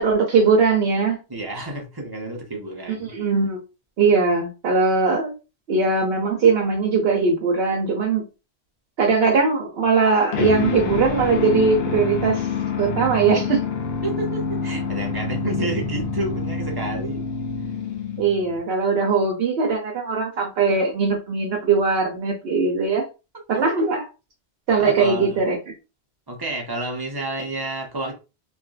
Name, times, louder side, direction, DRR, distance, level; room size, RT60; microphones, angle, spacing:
voice 1, 0.0-1.2 2.9-3.6 4.0-5.4 5.7-8.3 9.0-12.5 12.8-13.6 18.2-23.0 23.5-24.1 24.7-25.6, right 4 dB, 70° right, 0.8 m, -20 dB
voice 2, 1.3-3.1 14.0-17.2 24.8-25.4 26.3-28.1, right 2 dB, 25° right, 0.7 m, -30 dB
sound 1, 10.3-18.6, left 5 dB, 70° left, 0.8 m, -27 dB
2.6 x 2.4 x 2.3 m
omnidirectional pair, 1.1 m